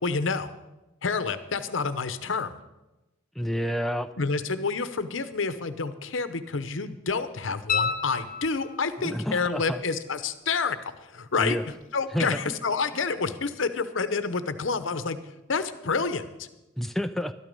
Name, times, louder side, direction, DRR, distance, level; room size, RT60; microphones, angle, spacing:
voice 1, 0.0-0.5 1.0-2.5 4.2-11.6 11.9-15.2 15.5-16.5, left 4 dB, 70° left, 12 dB, 0.8 m, -28 dB
voice 2, 3.4-4.1 9.0-9.8 11.4-11.6 12.1-12.4 16.8-17.3, equal, ahead, 7 dB, 0.4 m, -29 dB
sound 1, 7.7-9.0 11.8-11.9, left 6 dB, 50° left, 0.9 m, -29 dB
12.5 x 12.5 x 5.3 m, 1.0 s
head